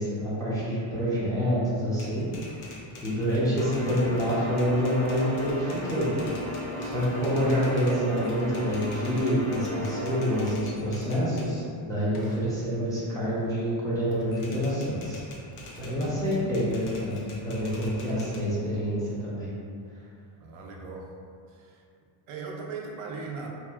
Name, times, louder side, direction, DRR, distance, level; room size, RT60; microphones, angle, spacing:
voice 1, 0.0-2.3 3.0-6.1 6.8-15.2 15.8-17.2 17.4-19.5, equal, 10° left, -10 dB, 0.4 m, -27 dB
Typewriter, 1.9-11.5 12.0-13.8 14.1-18.4, left 2 dB, 75° left, 0.6 m, -46 dB
sound 1, 3.5-10.5, left 1 dB, 50° left, 1.0 m, -34 dB
voice 2, 16.1-16.5 20.4-21.1 21.5-21.8 22.3-23.5, right 4 dB, 70° right, 0 dB, 0.5 m, -39 dB
2.7 x 2.4 x 2.3 m, 2.3 s
cardioid pair, 145°, 50 cm